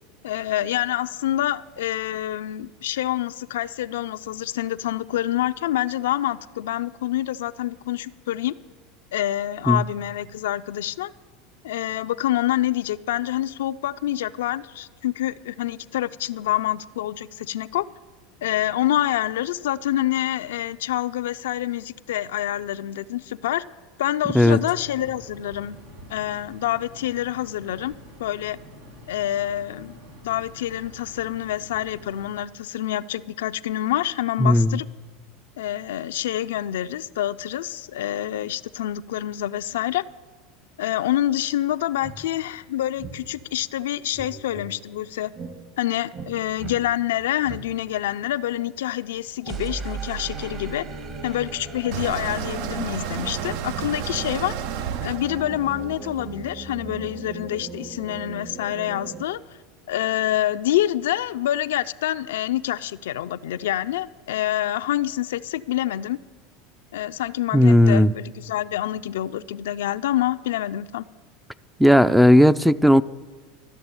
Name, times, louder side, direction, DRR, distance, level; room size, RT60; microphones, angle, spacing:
voice 1, 0.2-8.5 9.1-11.1 11.6-17.9 18.4-23.6 24.0-25.8 26.1-27.9 28.2-28.6 29.1-30.0 30.2-34.9 35.6-40.0 40.8-45.3 45.8-50.9 51.2-54.6 55.0-59.4 59.9-66.2 66.9-71.1, left 13 dB, 80° left, 0.4 m, -27 dB
sound 1, 24.3-32.3, left 1 dB, 90° right, 2.5 m, -46 dB
voice 2, 34.4-34.8 67.5-68.1 71.8-73.0, equal, ahead, 0.4 m, -15 dB
sound 2, 42.0-42.2 43.0-43.2 44.1-44.7 45.3-45.5 46.1-46.3 46.6-46.8 47.4-47.6 49.4-59.3, right 4 dB, 45° right, 1.9 m, -37 dB
sound 3, 51.9-56.9, right 9 dB, 65° right, 0.6 m, -32 dB
13.0 x 6.9 x 9.6 m
hypercardioid pair, 100°, 0 cm